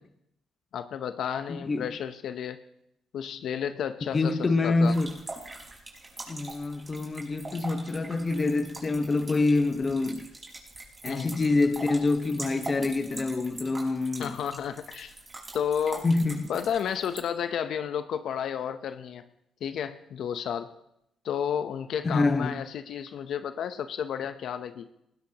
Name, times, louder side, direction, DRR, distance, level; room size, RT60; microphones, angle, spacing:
voice 1, 0.7-2.6 3.1-4.4 4.6-4.9 11.1-11.4 14.2-15.1 15.5-16.0 16.5-19.2 19.6-20.7 21.2-24.9, left 8 dB, 70° left, 0.7 m, -32 dB
voice 2, 1.5-1.9 4.1-5.2 6.3-10.3 11.0-14.3 16.0-16.5 22.0-22.5, left 3 dB, 30° left, 1.1 m, -26 dB
sound 1, 4.8-17.2, right 2 dB, 30° right, 4.9 m, -43 dB
20.0 x 16.5 x 2.9 m
cardioid pair, 90°, 0 cm